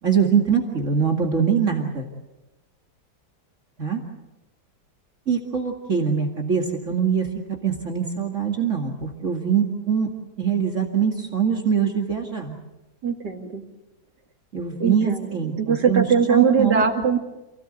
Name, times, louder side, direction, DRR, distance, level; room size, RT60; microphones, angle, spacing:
voice 1, 0.0-2.1 3.8-4.0 5.3-7.3 7.6-10.1 10.4-12.6 14.5-16.8, right 7 dB, 45° right, 1 dB, 2.5 m, -23 dB
voice 2, 13.0-13.6 14.8-17.2, right 6 dB, 90° right, 4 dB, 2.9 m, -21 dB
28.5 x 18.0 x 8.0 m, 1.0 s
omnidirectional pair, 1.8 m